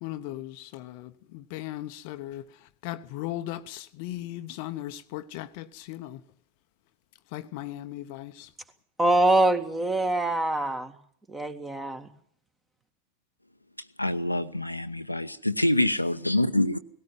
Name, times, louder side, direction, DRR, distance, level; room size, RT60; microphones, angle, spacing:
voice 1, 0.0-2.4 2.8-6.2 7.3-8.5, left 14 dB, 45° left, 0.9 m, -37 dB
voice 2, 9.0-10.9 11.3-12.1, right 1 dB, 10° right, 2.0 m, -24 dB
voice 3, 14.0-16.8, left 1 dB, 85° left, 0.9 m, -26 dB
18.5 x 17.0 x 9.3 m
figure-of-eight pair, 90°, 0 cm